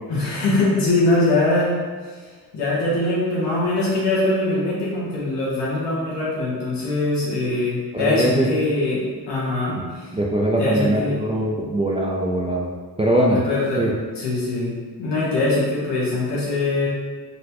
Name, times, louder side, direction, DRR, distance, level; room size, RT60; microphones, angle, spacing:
voice 1, 0.1-1.7 2.1-10.1 10.6-11.2 13.3-13.9 14.2-14.7 15.0-16.9, left 2 dB, 85° left, -7 dB, 1.0 m, -22 dB
voice 2, 7.9-8.5 9.7-9.8 10.1-12.7 13.0-13.5 13.8-13.9, right 1 dB, 15° right, -3 dB, 0.3 m, -21 dB
4.1 x 2.1 x 2.9 m, 1.5 s
cardioid pair, 80°, 41 cm